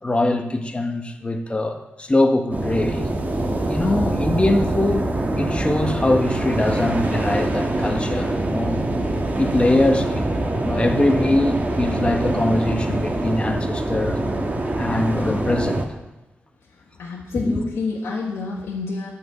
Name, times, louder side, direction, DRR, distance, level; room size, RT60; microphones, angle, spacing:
voice 1, 0.0-3.1 3.7-8.8 9.4-10.2 10.6-14.2 14.8-15.8 17.3-17.6, left 2 dB, 25° left, 1.4 m, -22 dB
sound 1, 2.5-15.9, right 2 dB, 40° right, 1.5 m, -24 dB
voice 2, 16.7-19.1, left 4 dB, 85° left, 1.3 m, -29 dB
9.4 x 5.3 x 7.9 m
cardioid pair, 60°, 4 cm